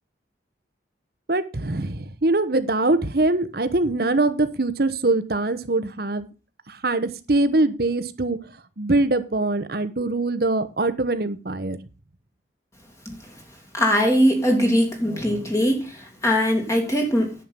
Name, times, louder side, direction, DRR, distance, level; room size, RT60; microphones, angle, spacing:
voice 1, 1.3-6.3 6.7-8.4 8.8-11.8, right 2 dB, 55° right, 11 dB, 1.1 m, -23 dB
voice 2, 13.7-17.3, equal, 15° left, 2 dB, 2.4 m, -21 dB
10.5 x 7.7 x 5.4 m, 0.32 s
head